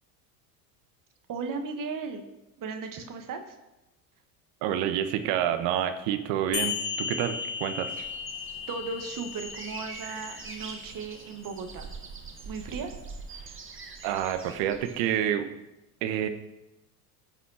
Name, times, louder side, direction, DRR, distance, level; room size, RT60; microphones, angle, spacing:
voice 1, 1.3-2.2 2.6-3.6 8.7-11.9 12.4-12.9 13.3-14.0, right 4 dB, 40° right, 6 dB, 1.6 m, -36 dB
voice 2, 4.6-8.1 14.0-15.5 16.0-16.3, right 10 dB, 65° right, 8 dB, 1.3 m, -28 dB
sound 1, 6.5-11.5, left 7 dB, 70° left, 1.8 m, -36 dB
sound 2, 7.9-15.2, right 4 dB, 25° right, 1.7 m, -44 dB
16.0 x 5.7 x 4.9 m, 1.0 s
hypercardioid pair, 85°, 48 cm